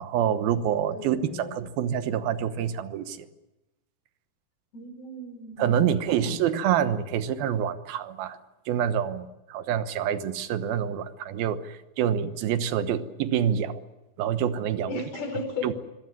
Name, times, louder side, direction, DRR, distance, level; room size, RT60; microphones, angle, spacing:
voice 1, 0.0-3.3 5.6-8.4 8.7-13.8 14.2-15.0 15.6-15.7, right 9 dB, 80° right, 11 dB, 3.0 m, -27 dB
voice 2, 0.9-1.6 4.7-6.7 14.8-15.7, left 3 dB, 85° left, 5 dB, 6.7 m, -36 dB
24.5 x 17.5 x 9.8 m, 1.0 s
omnidirectional pair, 4.3 m